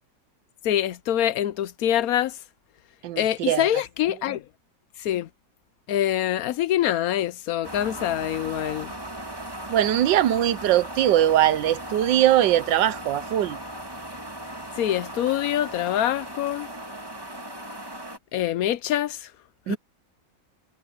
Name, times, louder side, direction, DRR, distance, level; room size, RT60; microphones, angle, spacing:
voice 1, 0.6-2.4 3.2-4.4 5.0-5.3 5.9-8.9 14.8-16.7 18.3-19.3 19.7-19.8, left 11 dB, 65° left, 1.0 m, -25 dB
voice 2, 3.0-3.6 9.7-13.6 19.7-19.8, right 12 dB, 85° right, 1.4 m, -21 dB
sound 1, 7.6-18.2, right 1 dB, 15° right, 2.3 m, -37 dB
omnidirectional pair, 1.9 m